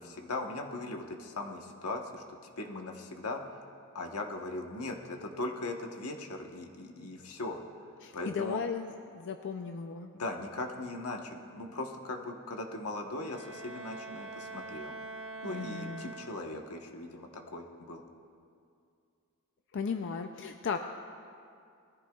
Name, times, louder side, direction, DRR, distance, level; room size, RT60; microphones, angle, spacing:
voice 1, 0.0-2.2 2.6-3.4 3.9-7.6 8.1-8.6 10.1-15.0 15.4-18.0, left 2 dB, 85° left, 3 dB, 1.2 m, -39 dB
voice 2, 8.0-10.1 15.5-16.1 19.7-20.8, left 5 dB, 55° left, 6 dB, 0.5 m, -36 dB
Bowed string instrument, 13.2-16.7, right 2 dB, 60° right, 1.3 m, -44 dB
20.5 x 14.5 x 2.3 m, 2.4 s
head